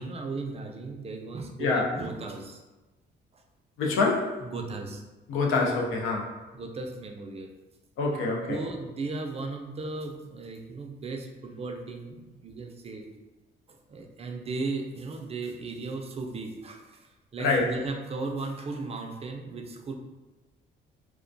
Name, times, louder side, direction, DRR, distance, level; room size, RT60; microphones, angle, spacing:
voice 1, 0.0-2.6 3.3-3.4 4.4-5.0 6.5-7.5 8.5-13.1 13.9-19.9, right 3 dB, 30° right, 3 dB, 0.3 m, -36 dB
voice 2, 3.8-4.4 5.3-6.3 8.0-8.6 17.4-17.7, left 3 dB, 90° left, 1 dB, 0.5 m, -25 dB
2.2 x 2.2 x 2.5 m, 1.1 s
cardioid pair, 90°, 20 cm